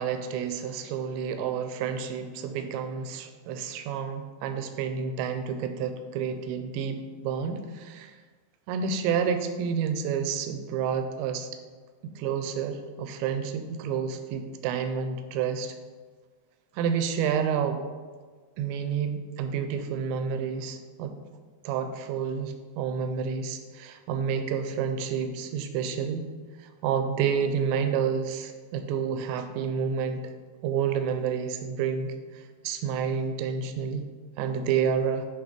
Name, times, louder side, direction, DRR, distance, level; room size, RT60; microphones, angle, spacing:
voice 1, 0.0-8.1 8.7-11.5 12.0-15.7 16.7-17.8 18.6-21.1 21.6-26.3 26.8-30.2 30.6-34.0 34.4-35.3, right 7 dB, 85° right, 7 dB, 2.7 m, -29 dB
8.6 x 3.3 x 5.1 m, 1.5 s
omnidirectional pair, 5.4 m